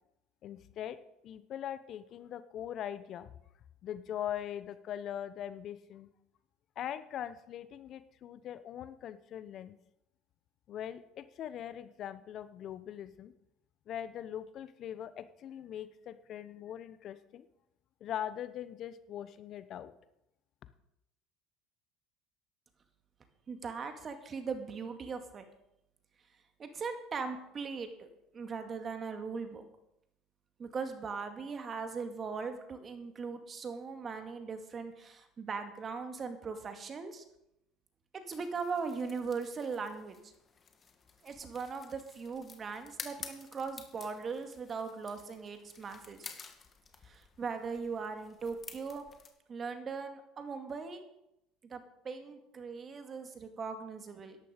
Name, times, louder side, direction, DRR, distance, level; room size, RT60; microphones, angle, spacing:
voice 1, 0.4-1.0 1.2-3.3 3.8-6.1 6.8-9.8 10.7-13.3 13.9-17.5 18.0-19.9, left 10 dB, 50° left, 13 dB, 0.9 m, -41 dB
voice 2, 23.5-25.4 26.6-28.1 28.3-29.6 30.6-37.2 38.1-40.3 41.2-46.3 47.0-49.0 49.5-51.0 51.6-54.4, right 5 dB, 35° right, 7 dB, 2.2 m, -39 dB
sound 1, 38.3-49.3, left 5 dB, 35° left, 2.1 m, -51 dB
13.5 x 11.0 x 5.1 m, 0.83 s
hypercardioid pair, 75°, 0 cm